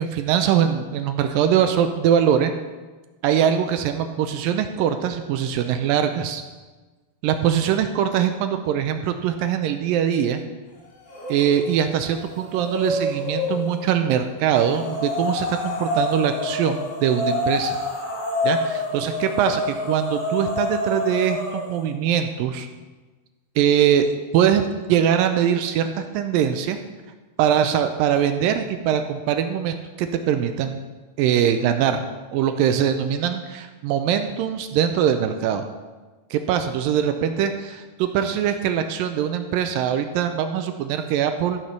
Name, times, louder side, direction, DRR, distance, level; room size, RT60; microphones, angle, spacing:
voice 1, 0.0-2.5 3.2-6.4 7.2-10.4 11.3-17.8 18.4-22.7 23.6-24.1 24.3-24.6 24.9-26.8 27.4-30.8 31.2-32.1 32.3-35.7 36.3-41.6, right 9 dB, 80° right, 7 dB, 2.1 m, -22 dB
sound 1, 11.1-11.7 12.0-13.8 14.6-21.8, left 2 dB, 60° left, 5.6 m, -27 dB
14.0 x 5.8 x 6.8 m, 1.3 s
omnidirectional pair, 4.5 m